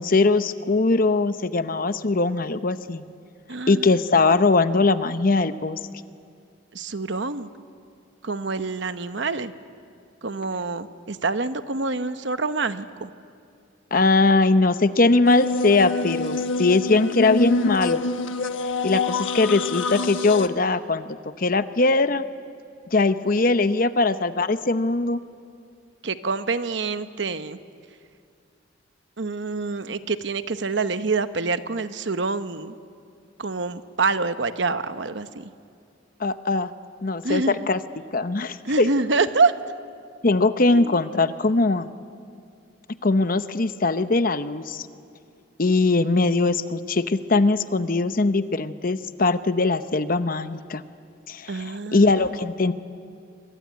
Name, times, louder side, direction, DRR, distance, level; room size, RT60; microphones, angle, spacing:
voice 1, 0.0-3.0 3.7-5.8 13.9-18.0 18.8-21.1 21.4-22.2 22.9-25.2 36.2-36.7 37.0-37.8 38.1-38.9 40.2-41.9 43.0-44.9 45.6-50.8 51.3-52.7, left 3 dB, 45° left, 12 dB, 0.8 m, -21 dB
voice 2, 3.5-3.8 6.7-7.5 8.2-9.5 10.2-13.1 26.0-27.6 29.2-32.7 33.4-35.5 37.2-37.6 38.6-39.5 40.7-41.0 51.5-52.1, right 3 dB, 65° right, 11 dB, 1.0 m, -26 dB
sound 1, 15.2-20.5, left 3 dB, 75° left, 1.3 m, -26 dB
25.5 x 23.5 x 9.5 m, 2.3 s
head